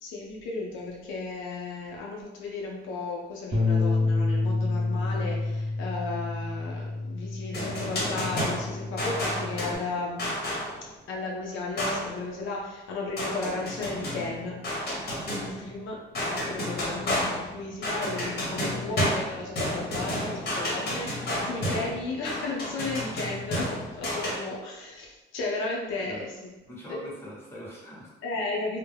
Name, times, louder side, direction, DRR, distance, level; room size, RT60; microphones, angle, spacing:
voice 1, 0.0-10.3 11.1-14.6 15.3-16.0 16.3-26.5 26.9-27.0 28.2-28.8, left 3 dB, 85° left, -2 dB, 0.5 m, -34 dB
Bass guitar, 3.5-9.8, left 3 dB, 20° right, 0.6 m, -29 dB
sound 1, 7.5-10.9 11.8-12.2 13.2-15.8 16.1-24.4, equal, 50° left, 0.9 m, -31 dB
voice 2, 26.0-26.3 26.7-28.1, equal, 10° left, -6 dB, 1.0 m, -43 dB
2.2 x 2.0 x 3.2 m, 1.1 s
cardioid pair, 90°, 20 cm